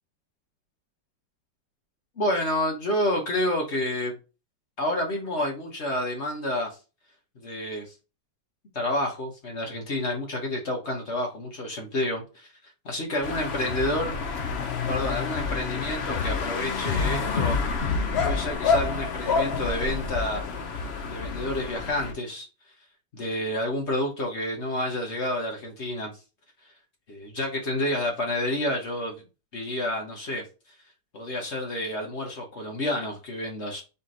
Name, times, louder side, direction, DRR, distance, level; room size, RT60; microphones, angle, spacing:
voice 1, 2.2-4.1 4.8-6.7 7.4-7.9 8.7-12.5 12.8-14.2 14.9-17.6 18.2-20.4 21.1-22.5 23.1-26.1 27.1-29.2 29.5-30.4 31.1-33.8, left 1 dB, 40° left, 1.2 m, -29 dB
sound 1, 13.2-22.1, left 5 dB, 70° left, 0.6 m, -28 dB
4.1 x 3.0 x 3.8 m
omnidirectional pair, 2.0 m